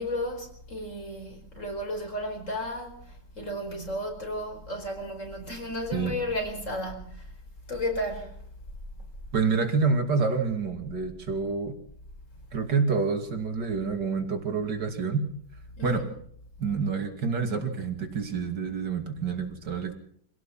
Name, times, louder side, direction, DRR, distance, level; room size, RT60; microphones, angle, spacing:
voice 1, 0.0-7.3 7.7-8.4 15.8-16.0, left 1 dB, 40° left, 5.1 m, -33 dB
voice 2, 9.3-11.8 12.5-15.2 15.8-16.1 16.6-20.0, right 4 dB, 65° right, 3.2 m, -27 dB
25.5 x 17.5 x 5.9 m
omnidirectional pair, 2.0 m